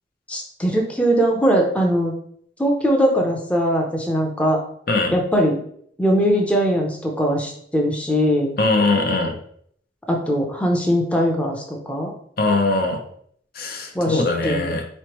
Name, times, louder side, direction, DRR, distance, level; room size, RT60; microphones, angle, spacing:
voice 1, 0.3-2.1 2.6-4.6 5.1-5.6 6.0-8.5 10.1-12.1 13.9-14.7, equal, 5° left, 0 dB, 0.6 m, -20 dB
voice 2, 8.6-9.4 12.4-13.0 13.5-14.8, left 2 dB, 55° left, 3 dB, 0.6 m, -21 dB
4.2 x 3.2 x 2.9 m, 0.63 s
head